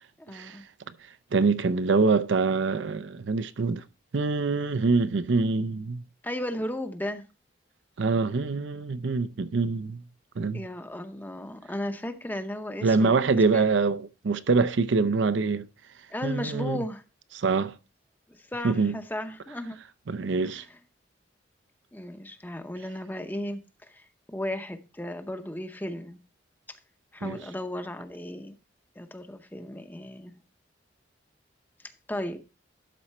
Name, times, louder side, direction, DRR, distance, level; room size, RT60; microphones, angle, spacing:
voice 1, 0.2-0.6 6.2-7.3 10.5-13.2 13.5-13.6 16.1-17.0 18.3-19.8 20.4-20.7 21.9-23.6 23.9-24.0 24.3-26.2 27.1-28.6 29.0-30.4 32.1-32.5, left 1 dB, 10° left, 0.7 m, -35 dB
voice 2, 1.3-3.8 4.1-6.0 8.0-10.0 10.4-10.7 12.8-15.7 16.2-16.8 17.3-17.7 18.6-18.9 20.1-20.6 27.2-27.4, right 4 dB, 80° right, 0.6 m, -25 dB
12.0 x 4.3 x 4.3 m
head